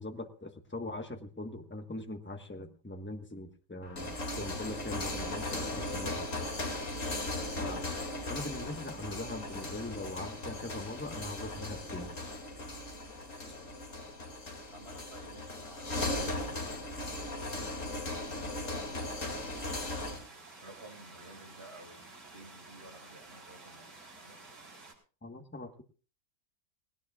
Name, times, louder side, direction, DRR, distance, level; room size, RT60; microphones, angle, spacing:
voice 1, 0.0-6.3 7.6-7.8 8.3-12.1 25.2-25.8, left 2 dB, 10° left, 5 dB, 1.1 m, -41 dB
sound 1, 3.8-20.3, left 2 dB, 50° left, 2.9 m, -37 dB
voice 2, 14.7-16.6 17.0-19.5 20.6-24.4, right 1 dB, 35° right, -1 dB, 5.3 m, -53 dB
sound 2, 19.5-24.9, right 3 dB, 85° right, 4.8 m, -52 dB
20.0 x 18.0 x 2.4 m, 0.37 s
omnidirectional pair, 1.8 m